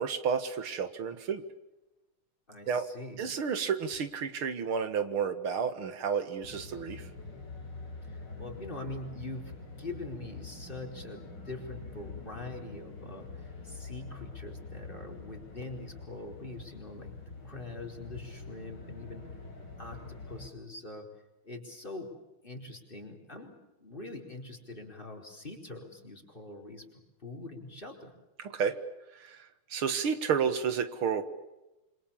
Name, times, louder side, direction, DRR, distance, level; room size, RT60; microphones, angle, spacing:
voice 1, 0.0-1.4 2.7-2.9 3.2-7.1 28.4-28.8 29.1-31.2, right 6 dB, 80° right, 10 dB, 2.6 m, -31 dB
voice 2, 2.5-3.3 8.1-9.5 9.8-17.1 17.4-19.3 19.8-21.1 21.4-22.1 22.4-26.8 27.2-28.1, left 2 dB, 25° left, 2 dB, 4.6 m, -43 dB
sound 1, 6.4-20.5, left 3 dB, 55° left, 5.1 m, -45 dB
27.5 x 26.5 x 7.3 m, 0.98 s
omnidirectional pair, 2.3 m